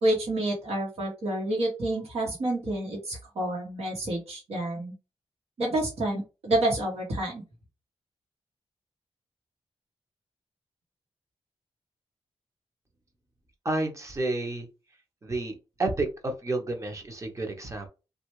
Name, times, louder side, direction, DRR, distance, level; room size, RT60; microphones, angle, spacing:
voice 1, 0.0-4.9 5.6-7.4, right 1 dB, 80° right, -2 dB, 1.2 m, -28 dB
voice 2, 13.6-14.7 15.2-17.9, right 2 dB, 30° right, 3 dB, 0.8 m, -30 dB
3.2 x 2.4 x 3.1 m, 0.29 s
wide cardioid pair, 140°, 11 cm